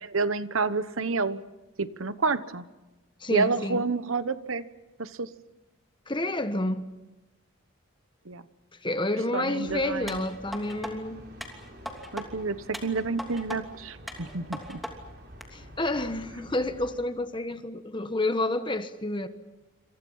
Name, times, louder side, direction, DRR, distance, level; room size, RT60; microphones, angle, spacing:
voice 1, 0.0-1.4 1.8-2.6 3.3-4.6 5.0-5.3 8.3-8.4 9.3-10.3 12.1-14.8, right 4 dB, 75° right, 1.1 m, -29 dB
voice 2, 3.2-3.8 6.1-6.9 8.8-11.2 15.5-19.3, left 1 dB, 20° left, 1.3 m, -29 dB
sound 1, 9.6-17.0, equal, 50° right, 5.8 m, -48 dB
sound 2, 10.1-10.9 11.4-12.3 12.7-13.6 14.1-14.9 15.4-15.5, equal, ahead, 2.9 m, -38 dB
28.5 x 27.0 x 5.7 m
head